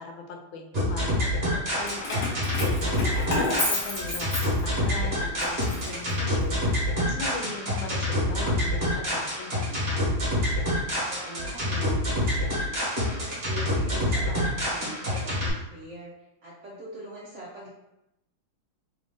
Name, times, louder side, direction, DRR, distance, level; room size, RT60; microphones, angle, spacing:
voice 1, 0.0-6.7 7.0-10.1, left 4 dB, 85° left, 2 dB, 1.4 m, -39 dB
sound 1, 0.7-15.5, left 1 dB, 35° right, 1.3 m, -27 dB
Keys jangling, 1.8-5.0 5.4-6.7, left 2 dB, 50° left, 0.7 m, -31 dB
voice 2, 10.9-12.0 12.3-12.4 13.0-16.1 16.4-17.7, right 1 dB, 65° right, -5 dB, 0.7 m, -41 dB
3.4 x 2.5 x 3.6 m, 0.89 s
omnidirectional pair, 2.2 m